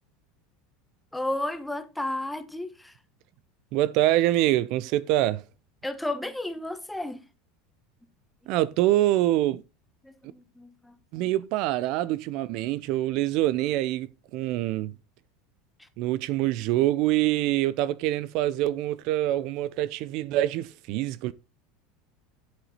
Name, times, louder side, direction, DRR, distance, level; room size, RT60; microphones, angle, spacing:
voice 1, 1.1-2.9 5.8-7.2 10.0-11.3 15.8-15.9, left 1 dB, 5° left, 1.1 m, -33 dB
voice 2, 3.7-5.4 8.5-9.6 11.1-14.9 16.0-21.3, right 15 dB, 60° right, 0.5 m, -25 dB
8.1 x 8.0 x 4.1 m
supercardioid pair, 120°, 0 cm